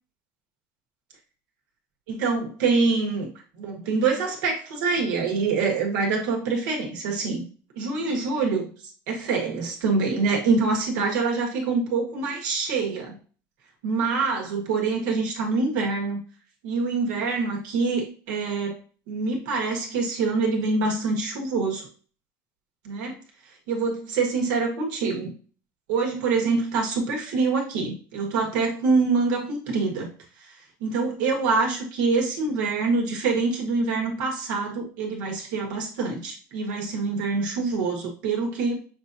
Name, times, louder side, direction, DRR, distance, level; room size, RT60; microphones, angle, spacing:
voice 1, 2.1-7.4 7.7-8.7 9.1-13.2 13.8-16.2 16.6-18.8 19.1-21.9 22.8-23.2 23.7-25.3 25.9-30.1 30.4-38.8, right 4 dB, 80° right, 0 dB, 1.6 m, -25 dB
6.8 x 2.8 x 2.6 m, 0.40 s
supercardioid pair, 100°, 10 cm